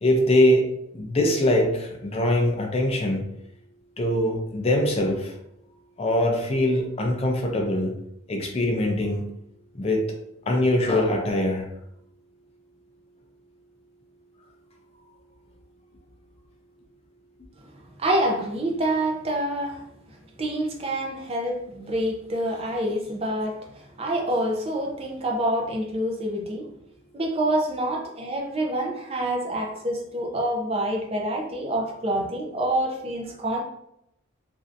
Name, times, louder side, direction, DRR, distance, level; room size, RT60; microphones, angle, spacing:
voice 1, 0.0-0.7 0.9-3.2 4.0-5.3 6.0-7.9 8.3-9.3 9.7-10.1 10.5-11.7, left 1 dB, 30° left, 1 dB, 0.5 m, -22 dB
voice 2, 18.0-19.8 20.4-26.7 27.1-33.6, right 1 dB, 30° right, 0 dB, 0.5 m, -27 dB
3.2 x 2.6 x 2.5 m, 0.76 s
head